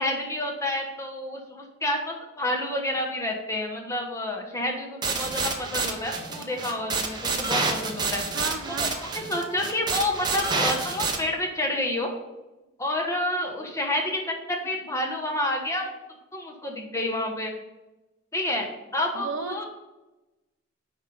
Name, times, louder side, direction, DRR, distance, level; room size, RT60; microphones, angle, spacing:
voice 1, 0.0-8.2 8.8-8.9 9.1-12.1 12.8-15.9 16.3-17.5 18.3-18.7 18.9-19.6, left 1 dB, 15° left, 1 dB, 1.1 m, -29 dB
sound 1, 5.0-11.2, right 4 dB, 20° right, 0.8 m, -28 dB
voice 2, 8.3-9.0 19.1-19.6, right 4 dB, 80° right, 7 dB, 0.8 m, -34 dB
10.0 x 3.5 x 5.3 m, 1.1 s
head